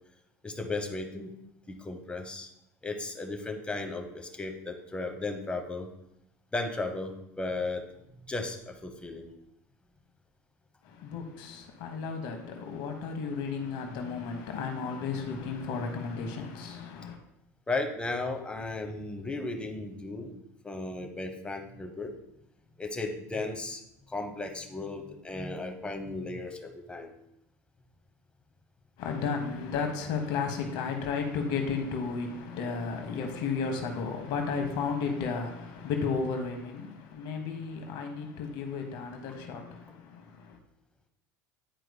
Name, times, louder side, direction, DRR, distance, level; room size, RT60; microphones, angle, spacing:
voice 1, 0.4-1.4 1.7-2.5 2.8-5.9 6.5-7.8 8.2-9.3 17.7-22.1 22.8-23.8 24.1-27.1, left 2 dB, 15° left, 1.0 m, -35 dB
voice 2, 10.8-17.2 29.0-40.6, left 5 dB, 65° left, 1.1 m, -33 dB
10.0 x 4.5 x 2.2 m
supercardioid pair, 95°, 8 cm